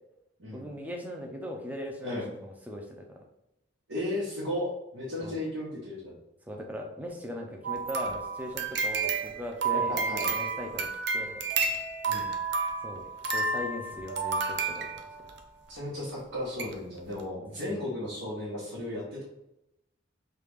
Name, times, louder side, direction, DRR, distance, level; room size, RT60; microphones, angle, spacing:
voice 1, 0.5-3.2 5.2-5.4 6.5-11.4 12.8-14.9 17.6-17.8, equal, 10° right, 1 dB, 0.5 m, -39 dB
voice 2, 3.9-6.1 9.7-10.3 12.1-12.3 15.7-19.2, left 1 dB, 85° right, -9 dB, 1.1 m, -35 dB
sound 1, 7.6-15.4 16.1-16.2 16.6-16.7 17.1-17.2, right 4 dB, 60° right, 0.4 m, -31 dB
3.2 x 2.4 x 3.4 m, 0.87 s
head